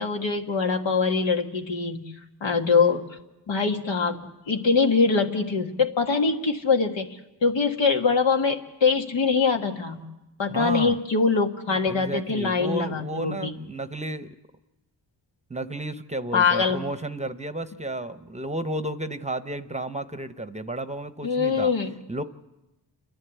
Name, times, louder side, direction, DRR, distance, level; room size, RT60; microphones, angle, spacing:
voice 1, 0.0-2.1 2.4-3.1 3.5-7.1 7.4-10.0 10.4-13.5 16.3-16.8 21.2-21.9, left 5 dB, 80° left, 4 dB, 1.7 m, -23 dB
voice 2, 10.5-11.0 11.9-14.4 15.5-21.7 22.1-22.2, right 1 dB, 15° right, 11 dB, 0.8 m, -32 dB
29.0 x 11.0 x 8.2 m, 0.99 s
cardioid pair, 75°, 44 cm